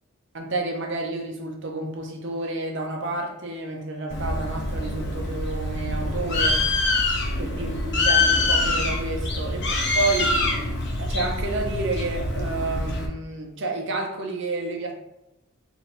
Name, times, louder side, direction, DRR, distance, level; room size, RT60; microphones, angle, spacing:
voice 1, 0.3-6.7 7.4-9.7 9.9-10.5 11.0-15.0, right 2 dB, 55° right, 1 dB, 0.7 m, -30 dB
Bird, 4.1-13.1, left 2 dB, 55° left, 0.7 m, -25 dB
4.1 x 2.7 x 3.2 m, 0.89 s
head